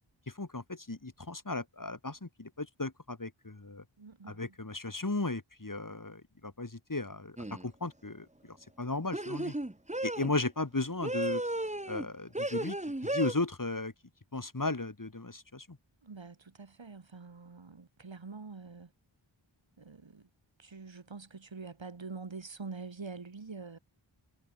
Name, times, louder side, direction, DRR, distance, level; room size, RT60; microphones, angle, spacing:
voice 1, 0.3-3.8 4.3-9.5 10.0-11.4 11.9-12.8 13.0-13.9 14.3-15.8, left 2 dB, 45° left, 3.4 m, -36 dB
voice 2, 4.0-4.5 16.0-18.9 19.8-20.3 20.6-23.8, right 4 dB, 70° right, 2.4 m, -45 dB
sound 1, 7.4-7.7 9.1-10.3 11.0-12.1 12.4-13.3, right 1 dB, 15° right, 1.8 m, -34 dB
wide cardioid pair, 55°, 47 cm